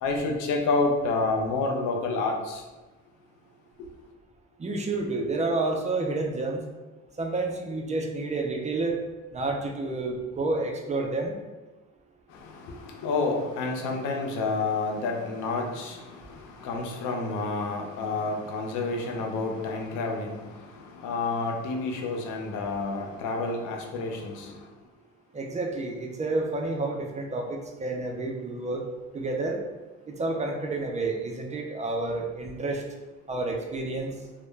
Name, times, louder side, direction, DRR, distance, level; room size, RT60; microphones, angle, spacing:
voice 1, 0.0-2.6 12.3-24.6, left 3 dB, 90° left, 1 dB, 0.5 m, -29 dB
voice 2, 4.6-6.6 7.2-9.0 9.3-11.4 25.3-28.9 29.1-29.6 30.1-32.8 33.3-34.1, right 2 dB, 25° right, 1 dB, 0.3 m, -29 dB
2.1 x 2.0 x 3.1 m, 1.1 s
cardioid pair, 90°, 30 cm